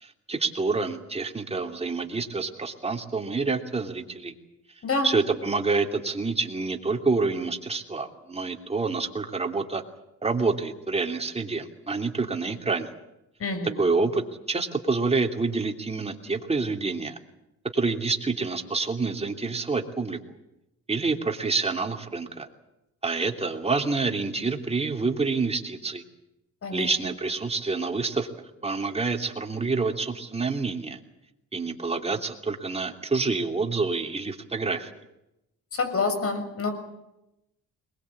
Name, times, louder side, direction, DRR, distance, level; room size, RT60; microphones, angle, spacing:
voice 1, 0.0-4.3 5.0-9.8 10.2-12.9 13.8-17.2 17.7-20.2 20.9-22.5 23.0-26.0 26.7-28.3 28.6-31.0 31.5-34.9, right 4 dB, 20° right, 4 dB, 3.0 m, -27 dB
voice 2, 13.4-13.7 26.6-26.9 35.7-36.7, left 3 dB, 50° left, 7 dB, 6.5 m, -27 dB
22.0 x 21.0 x 8.6 m, 0.89 s
cardioid pair, 90°, 30 cm